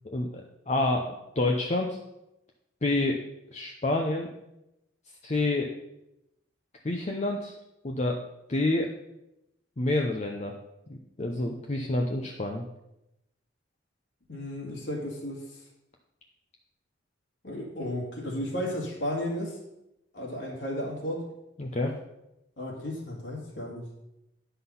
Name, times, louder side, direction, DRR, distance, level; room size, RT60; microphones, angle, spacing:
voice 1, 0.0-2.0 2.8-3.2 3.5-4.3 5.2-5.7 6.8-7.5 7.8-8.2 8.5-8.9 9.8-10.5 10.9-12.6 21.6-21.9, left 2 dB, 35° left, 1 dB, 0.7 m, -28 dB
voice 2, 14.3-15.6 17.4-19.6 20.1-21.3 22.6-23.9, left 1 dB, 70° left, -3 dB, 2.2 m, -34 dB
10.0 x 5.8 x 5.6 m, 0.89 s
head